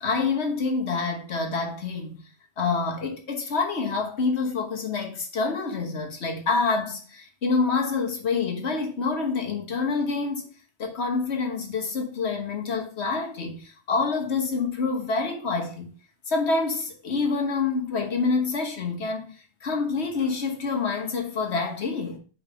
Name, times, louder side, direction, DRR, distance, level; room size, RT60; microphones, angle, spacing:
voice 1, 0.0-2.2 2.6-10.5 10.8-15.9 16.3-19.3 19.6-22.2, left 4 dB, 85° left, 1.5 m, -27 dB
5.1 x 4.0 x 5.0 m
omnidirectional pair, 1.1 m